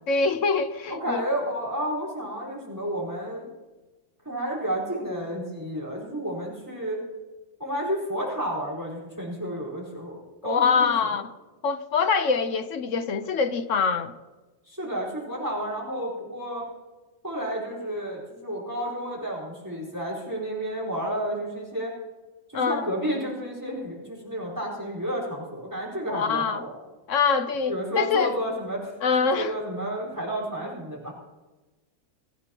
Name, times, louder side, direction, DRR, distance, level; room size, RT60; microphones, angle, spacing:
voice 1, 0.1-1.2 10.4-11.3 11.6-14.1 22.5-22.9 26.1-26.6 27.1-28.3 29.0-29.6, left 5 dB, 65° left, 1.2 m, -24 dB
voice 2, 0.9-3.5 4.2-7.0 7.6-10.9 14.7-16.7 17.2-21.9 22.5-26.8 27.7-28.9 29.2-31.1, right 1 dB, 15° right, 4.6 m, -31 dB
23.5 x 15.5 x 3.0 m
omnidirectional pair, 1.4 m